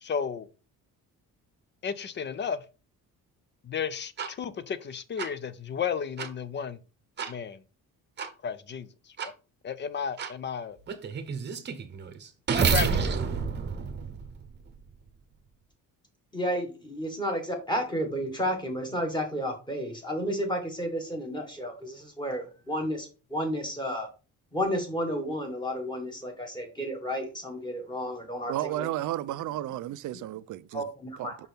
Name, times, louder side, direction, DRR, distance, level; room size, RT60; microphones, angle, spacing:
voice 1, 0.0-0.5 1.8-2.6 3.6-6.8 7.3-7.6 8.4-8.9 9.2-9.3 9.6-10.8 12.7-13.1, left 7 dB, 30° left, 0.5 m, -33 dB
sound 1, 4.2-4.3 5.2-5.3 6.2-6.3 7.2-7.3 8.2-8.3 9.2-9.3 10.2-10.3 10.9-14.8, right 5 dB, 30° right, 0.9 m, -29 dB
voice 2, 16.3-24.1 24.5-28.9 30.7-31.4, equal, 10° left, 1.7 m, -32 dB
voice 3, 28.5-30.8 31.2-31.3, right 14 dB, 60° right, 0.5 m, -33 dB
5.9 x 5.5 x 3.5 m
cardioid pair, 145°, 35 cm